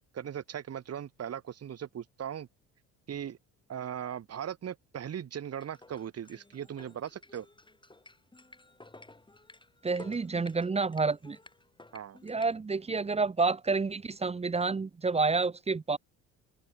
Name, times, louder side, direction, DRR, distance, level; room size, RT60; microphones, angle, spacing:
voice 1, 0.1-2.5 3.1-3.4 3.7-7.5 11.9-12.2, right 9 dB, 40° right, 1.6 m, -38 dB
sound 1, 5.5-12.5, left 2 dB, 15° left, 7.2 m, -54 dB
voice 2, 9.8-11.4 12.2-16.0, right 4 dB, 15° right, 0.7 m, -29 dB
open air
supercardioid pair, 75°, 37 cm